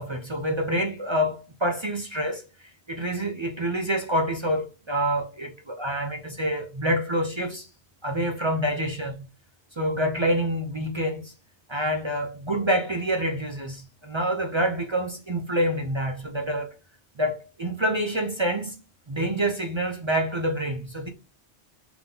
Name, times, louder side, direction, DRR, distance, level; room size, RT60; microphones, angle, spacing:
voice 1, 0.0-7.7 8.0-9.3 9.8-11.3 11.7-16.7 17.2-18.8 19.1-21.1, equal, 35° right, 0.5 m, -27 dB
3.6 x 3.0 x 3.8 m
omnidirectional pair, 1.2 m